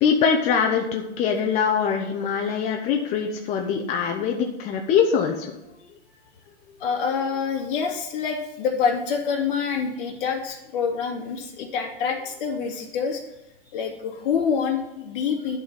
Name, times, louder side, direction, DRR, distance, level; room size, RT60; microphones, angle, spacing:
voice 1, 0.0-5.5, left 7 dB, 20° left, 2 dB, 0.6 m, -23 dB
voice 2, 6.7-13.2 13.7-15.6, left 6 dB, 50° left, 1 dB, 2.5 m, -26 dB
11.0 x 4.1 x 7.5 m, 0.91 s
hypercardioid pair, 150°, 35 cm